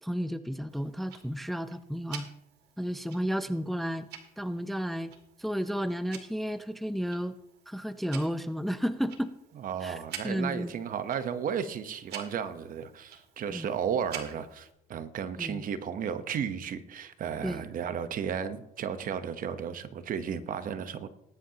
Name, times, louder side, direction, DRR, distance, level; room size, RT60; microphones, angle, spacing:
voice 1, 0.0-2.3 2.8-4.1 4.4-5.1 5.4-7.3 7.7-9.3 9.8-10.0 10.2-10.7 13.5-13.7 15.4-15.6 17.4-17.6, equal, ahead, 11 dB, 0.5 m, -32 dB
Tick-tock, 0.7-14.7, right 8 dB, 75° right, 1.9 m, -49 dB
voice 2, 9.6-21.1, right 8 dB, 55° right, 11 dB, 1.0 m, -34 dB
19.5 x 10.5 x 2.9 m, 0.84 s
cardioid pair, 110°, 17 cm